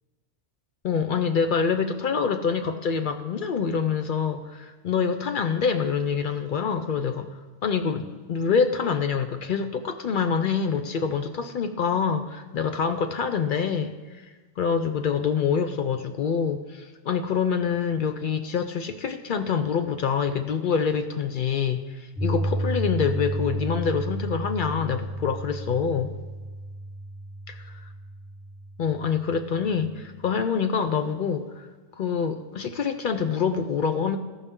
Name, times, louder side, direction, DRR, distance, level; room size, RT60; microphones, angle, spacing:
voice 1, 0.8-7.3 7.6-14.3 14.6-26.2 28.8-31.7 32.0-34.2, left 6 dB, 60° left, 7 dB, 0.6 m, -26 dB
Piano, 22.2-30.3, right 1 dB, 75° left, 2.2 m, -32 dB
13.5 x 5.5 x 3.6 m, 1.3 s
omnidirectional pair, 1.1 m